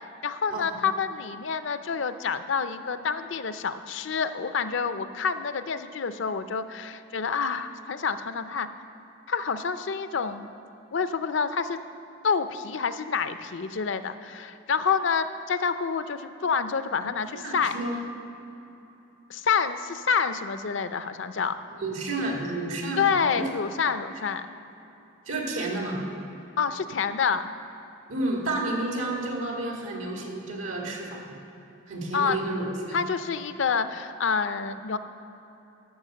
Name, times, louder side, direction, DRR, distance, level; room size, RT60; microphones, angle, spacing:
voice 1, 0.2-8.7 9.3-10.5 10.9-11.8 12.2-17.7 19.3-21.5 23.0-24.5 26.6-27.5 32.1-32.4 32.9-35.0, left 6 dB, 65° left, 11 dB, 0.5 m, -28 dB
voice 2, 17.3-18.0 21.8-23.5 25.2-26.0 28.1-31.4 31.9-33.0, right 2 dB, 85° right, -1 dB, 2.3 m, -31 dB
13.0 x 5.9 x 7.5 m, 3.0 s
head